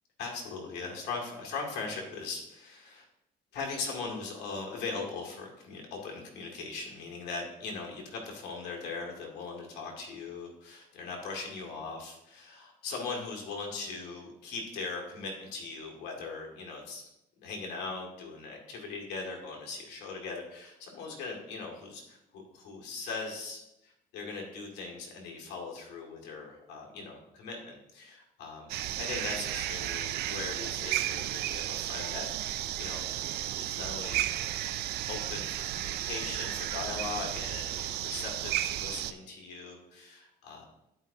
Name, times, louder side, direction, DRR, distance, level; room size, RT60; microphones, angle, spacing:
voice 1, 0.2-3.0 3.5-17.0 17.4-33.1 33.4-34.2 35.1-40.7, left 4 dB, 85° left, 0 dB, 2.1 m, -40 dB
sound 1, 28.7-39.1, right 13 dB, 75° right, 0.4 m, -33 dB
11.0 x 5.3 x 2.7 m, 0.85 s
cardioid pair, 110°, 17 cm